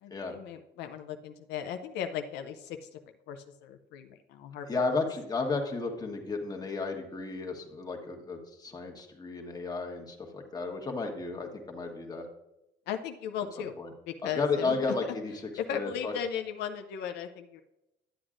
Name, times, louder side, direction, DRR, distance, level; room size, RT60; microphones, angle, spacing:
voice 1, 0.0-3.0 3.3-5.0 12.9-13.8 14.1-14.8 15.6-17.6, left 8 dB, 85° left, 6 dB, 0.6 m, -37 dB
voice 2, 4.7-12.3 13.8-13.9 14.2-15.4 15.7-16.2, left 3 dB, 20° left, 2 dB, 1.3 m, -33 dB
11.0 x 7.9 x 2.5 m, 0.91 s
cardioid pair, 110°, 17 cm